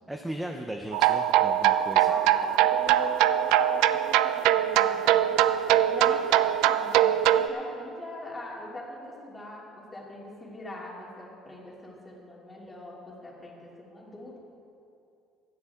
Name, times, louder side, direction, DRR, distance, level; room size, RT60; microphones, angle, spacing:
voice 1, 0.1-2.1, right 1 dB, 5° right, 3 dB, 0.6 m, -36 dB
sound 1, 0.9-7.5, right 12 dB, 85° right, 0.4 m, -22 dB
voice 2, 2.1-5.5 5.9-14.4, left 1 dB, 15° left, -4 dB, 2.7 m, -41 dB
17.0 x 12.5 x 3.6 m, 2.7 s
cardioid pair, 150°, 0 cm